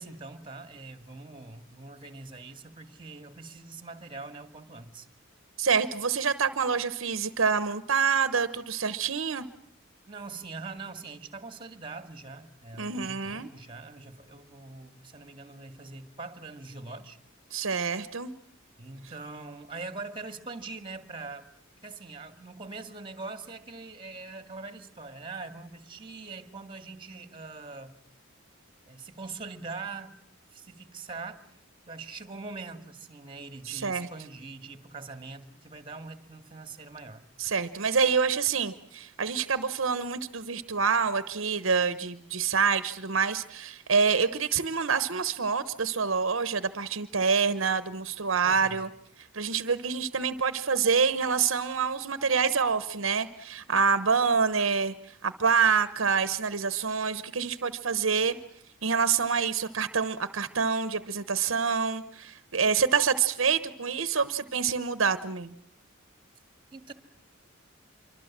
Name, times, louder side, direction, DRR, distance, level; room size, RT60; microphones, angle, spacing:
voice 1, 0.0-5.1 10.1-17.2 18.8-21.5 21.8-28.0 28.9-30.2 30.5-31.5 31.9-37.2 48.4-48.8 66.7-66.9, right 3 dB, 25° right, 9 dB, 2.1 m, -42 dB
voice 2, 5.6-9.5 12.8-13.5 17.5-18.3 33.7-34.1 37.4-48.9 49.3-54.9 55.2-58.4 58.8-65.5, right 5 dB, 70° right, 13 dB, 1.0 m, -27 dB
26.0 x 24.5 x 7.4 m, 0.66 s
head